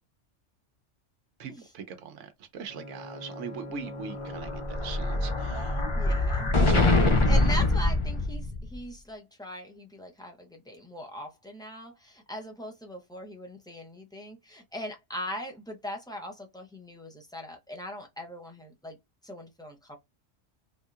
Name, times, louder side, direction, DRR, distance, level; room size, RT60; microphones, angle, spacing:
voice 1, 1.4-5.8 6.5-6.9, right 6 dB, 75° right, 1.0 m, -40 dB
Bowed string instrument, 2.6-7.5, equal, 30° left, 0.9 m, -42 dB
Explosion, 4.1-8.7, left 2 dB, 50° left, 0.3 m, -24 dB
voice 2, 5.9-6.5 7.3-19.0 19.2-20.0, equal, 5° left, 0.6 m, -40 dB
3.4 x 2.7 x 2.3 m
omnidirectional pair, 1.3 m